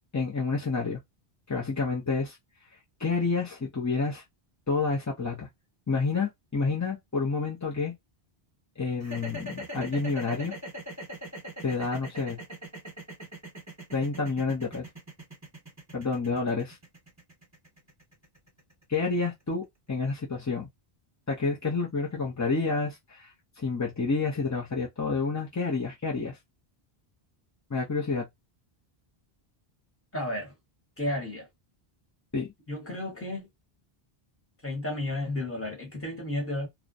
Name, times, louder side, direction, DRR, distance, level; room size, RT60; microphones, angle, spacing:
voice 1, 0.1-1.0 1.5-2.4 3.0-4.2 4.7-5.5 5.9-7.9 8.8-10.5 11.6-12.4 13.9-14.9 15.9-16.8 18.9-20.7 21.3-26.4 27.7-28.3 32.3-32.5, left 4 dB, 30° left, 0.3 m, -29 dB
sound 1, 9.0-19.2, right 1 dB, 15° right, 1.1 m, -41 dB
voice 2, 30.1-30.5 31.0-31.5 32.7-33.5 34.6-36.7, left 1 dB, 15° left, 1.0 m, -32 dB
2.4 x 2.1 x 2.4 m
omnidirectional pair, 1.1 m